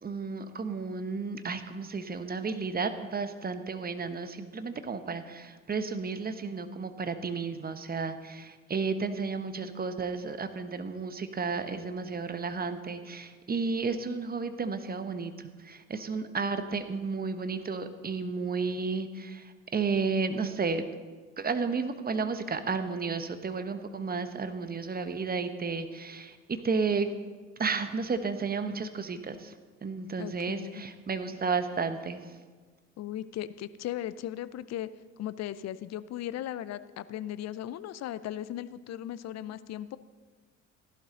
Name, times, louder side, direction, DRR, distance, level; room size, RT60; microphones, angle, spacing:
voice 1, 0.0-20.8 21.4-27.1 27.6-29.5 29.8-32.3, right 4 dB, 25° right, 9 dB, 1.1 m, -32 dB
voice 2, 30.2-30.8 33.0-34.9 35.2-40.0, left 12 dB, 45° left, 16 dB, 0.6 m, -37 dB
15.5 x 11.5 x 3.9 m, 1.4 s
hypercardioid pair, 55°, 38 cm